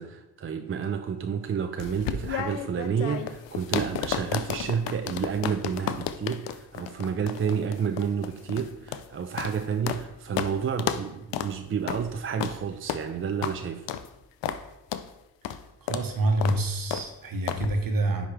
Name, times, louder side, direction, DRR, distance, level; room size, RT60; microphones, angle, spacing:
voice 1, 0.0-13.9, right 7 dB, 30° right, 0.4 m, -30 dB
sound 1, 1.8-10.1 10.4-10.5 10.8-11.0 11.3-11.5 11.9-12.0 12.4-12.6 12.9-13.0 13.4-13.6 13.9-14.1 14.4-14.6 14.9-15.1 15.4-15.6 15.9-16.1 16.4-16.6 16.9-17.1 17.5-17.7, left 10 dB, 80° left, 0.5 m, -32 dB
voice 2, 15.8-18.3, right 1 dB, 50° right, 1.1 m, -27 dB
9.7 x 3.8 x 3.2 m
cardioid pair, 65°, 42 cm